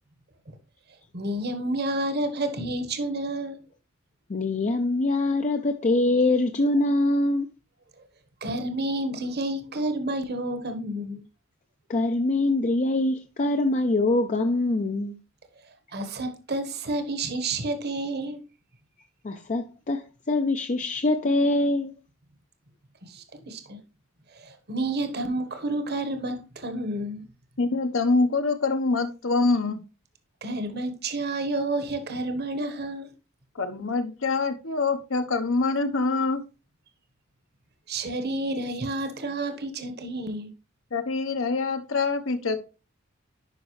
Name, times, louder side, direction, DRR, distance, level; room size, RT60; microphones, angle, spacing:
voice 1, 1.1-3.6 8.4-11.2 15.9-18.4 23.0-23.8 24.3-27.2 30.4-33.1 37.9-40.5, right 2 dB, 50° right, 1.2 m, -30 dB
voice 2, 4.3-7.5 11.9-15.2 19.2-21.9, left 2 dB, 35° left, 0.5 m, -24 dB
voice 3, 27.6-29.8 33.6-36.4 40.9-42.6, left 3 dB, 70° left, 1.0 m, -25 dB
10.5 x 5.2 x 3.1 m
head